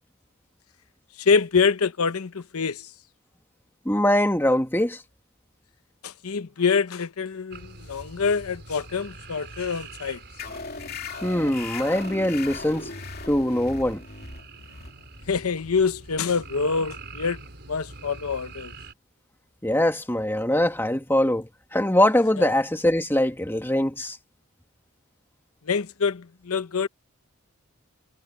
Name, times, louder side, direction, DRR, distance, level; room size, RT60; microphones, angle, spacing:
voice 1, 1.2-2.9 6.0-10.2 15.3-17.4 17.7-18.7 22.4-22.5 25.7-26.9, left 5 dB, 85° left, 0.8 m, -25 dB
voice 2, 3.9-5.0 11.2-12.9 13.3-14.0 19.6-24.2, left 1 dB, 10° left, 1.8 m, -22 dB
Frogs and Cicadas at Night in Tennessee, 7.5-18.9, right 3 dB, 50° right, 4.8 m, -45 dB
sound 1, 10.4-17.5, left 4 dB, 45° left, 3.0 m, -39 dB
head